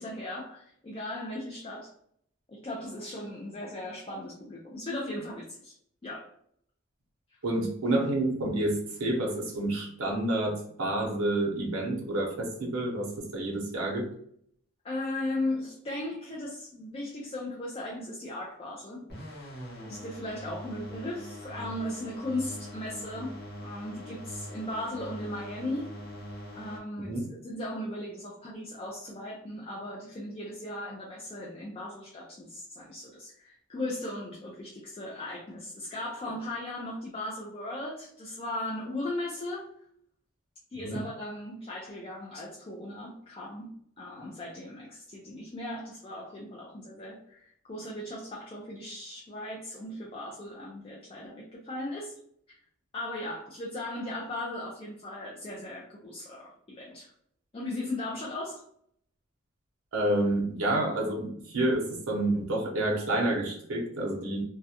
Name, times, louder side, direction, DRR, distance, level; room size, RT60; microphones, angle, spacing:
voice 1, 0.0-1.9 2.5-5.7 6.0-6.3 14.8-19.1 19.9-23.3 23.6-26.0 26.5-39.7 40.7-52.2 52.9-57.1 57.5-58.6, left 1 dB, 25° left, -4 dB, 0.3 m, -37 dB
voice 2, 7.4-14.1 27.0-27.3 40.8-41.0 59.9-64.4, right 1 dB, 75° right, -1 dB, 0.7 m, -29 dB
sound 1, 19.1-26.8, equal, 50° left, 0.8 m, -42 dB
2.3 x 2.1 x 2.7 m, 0.66 s
head